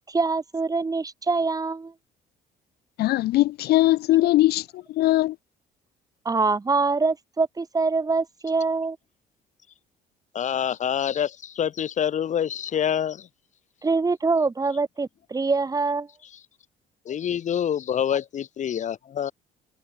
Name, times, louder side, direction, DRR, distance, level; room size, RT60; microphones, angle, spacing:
voice 1, 0.0-1.9 6.2-9.0 13.8-16.1, right 4 dB, 20° right, 2.8 m, -24 dB
voice 2, 3.0-4.6 4.9-5.3, left 16 dB, 70° left, 0.7 m, -20 dB
voice 3, 10.3-13.3 17.1-19.3, left 9 dB, 45° left, 1.1 m, -26 dB
cardioid pair, 110°, 17 cm